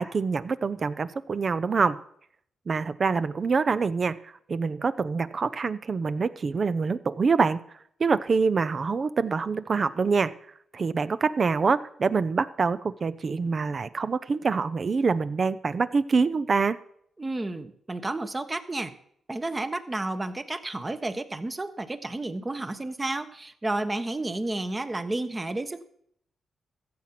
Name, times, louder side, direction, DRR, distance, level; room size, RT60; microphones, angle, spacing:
voice 1, 0.0-2.0 2.7-4.2 4.5-7.6 8.0-10.3 10.7-16.8, right 4 dB, 50° right, 14 dB, 0.6 m, -25 dB
voice 2, 17.2-18.9 19.3-25.8, right 2 dB, 25° right, 10 dB, 1.2 m, -31 dB
14.5 x 7.6 x 6.0 m, 0.68 s
supercardioid pair, 60°, 0 cm